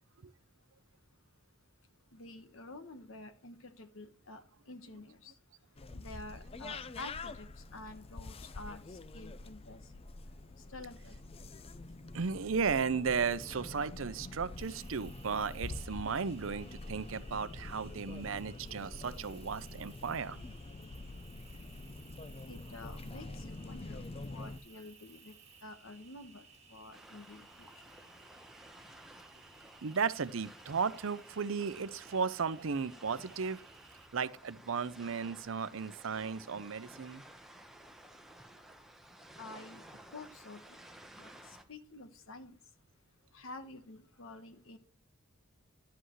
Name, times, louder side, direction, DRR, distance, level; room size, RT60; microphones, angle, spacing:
voice 1, 2.1-5.3 5.9-10.0 10.6-11.2 22.5-27.7 39.4-40.8 41.2-42.6 43.3-44.8, left 2 dB, 75° left, 1.3 m, -49 dB
sound 1, 5.8-24.6, left 2 dB, 30° left, 0.5 m, -46 dB
voice 2, 12.1-20.4 29.8-33.6 34.1-37.2, right 5 dB, 65° right, 0.6 m, -35 dB
Cricket, 14.6-34.1, right 5 dB, 30° right, 1.8 m, -60 dB
sound 2, 26.9-41.6, right 1 dB, ahead, 1.0 m, -55 dB
11.5 x 7.9 x 3.1 m
head